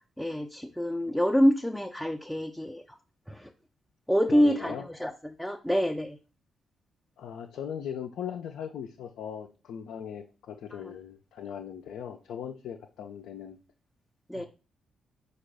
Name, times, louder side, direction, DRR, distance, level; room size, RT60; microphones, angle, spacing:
voice 1, 0.2-3.0 3.3-3.5 4.1-5.1 5.4-6.2 10.7-10.9 14.3-14.5, equal, ahead, 4 dB, 0.4 m, -26 dB
voice 2, 4.3-4.9 7.2-13.6 14.3-14.5, left 8 dB, 75° left, 3 dB, 0.4 m, -39 dB
4.4 x 2.3 x 4.7 m, 0.35 s
hypercardioid pair, 45°, 0 cm